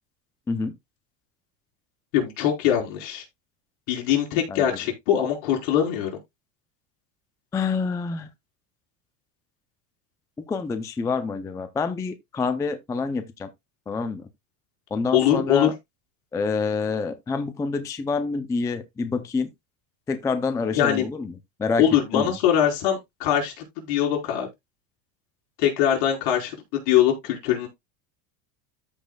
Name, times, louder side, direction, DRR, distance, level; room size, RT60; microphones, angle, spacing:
voice 1, 2.1-3.2 3.9-6.1 15.1-15.7 20.7-21.1 21.8-24.5 25.6-27.7, left 10 dB, 65° left, 3.9 m, -22 dB
voice 2, 7.5-8.3 10.5-13.5 13.9-14.3 14.9-15.7 16.3-19.5 20.1-21.3 21.6-22.4, left 4 dB, 10° left, 0.4 m, -27 dB
13.5 x 5.1 x 2.2 m
supercardioid pair, 145°, 47 cm